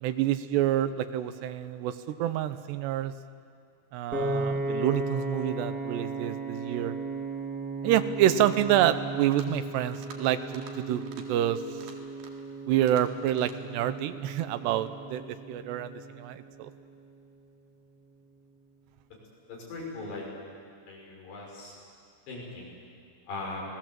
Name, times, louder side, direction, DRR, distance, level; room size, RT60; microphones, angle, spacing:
voice 1, 0.0-3.1 3.9-6.9 7.8-11.0 11.3-11.6 12.7-15.2 15.5-16.7, right 11 dB, 85° right, 11 dB, 3.0 m, -27 dB
Piano, 4.1-16.4, right 2 dB, 35° right, 1.6 m, -36 dB
sound 1, 9.1-9.6 9.9-10.2 10.5-10.7 11.0-11.2 11.7-12.5 12.8-13.6, right 6 dB, 65° right, 3.7 m, -49 dB
voice 2, 19.5-20.3 20.9-21.7 22.3-22.8 23.3-23.6, left 3 dB, 80° left, -3 dB, 7.9 m, -39 dB
29.0 x 18.5 x 7.6 m, 2.3 s
omnidirectional pair, 4.8 m